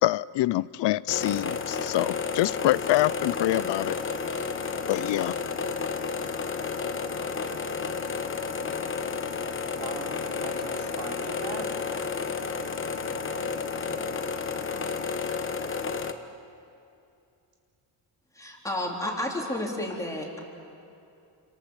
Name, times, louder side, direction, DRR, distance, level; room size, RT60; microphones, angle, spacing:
voice 1, 0.0-4.0 4.9-5.3, left 16 dB, 75° left, 19 dB, 0.5 m, -25 dB
sound 1, 1.1-16.1, left 5 dB, 30° left, 1.1 m, -31 dB
voice 2, 9.4-11.7 12.9-13.5, right 5 dB, 70° right, 0 dB, 4.3 m, -41 dB
voice 3, 18.3-20.4, left 1 dB, 5° left, -1 dB, 3.9 m, -31 dB
29.5 x 27.0 x 7.2 m, 2.6 s
cardioid pair, 155°, 43 cm